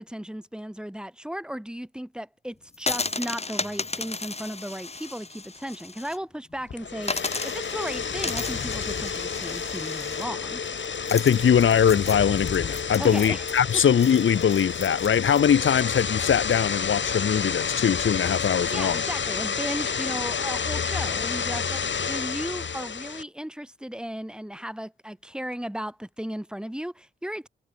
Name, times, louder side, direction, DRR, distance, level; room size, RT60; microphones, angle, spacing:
voice 1, 0.0-10.6 13.0-13.4 13.7-13.8 18.7-27.5, equal, 5° right, 4.8 m, -35 dB
sound 1, 2.7-6.2 6.5-6.6 7.0-15.4, left 3 dB, 30° left, 2.5 m, -34 dB
sound 2, 6.7-23.2, left 6 dB, 70° left, 5.9 m, -30 dB
voice 2, 11.1-19.0, left 8 dB, 85° left, 1.0 m, -21 dB
wide cardioid pair, 120°, 20 cm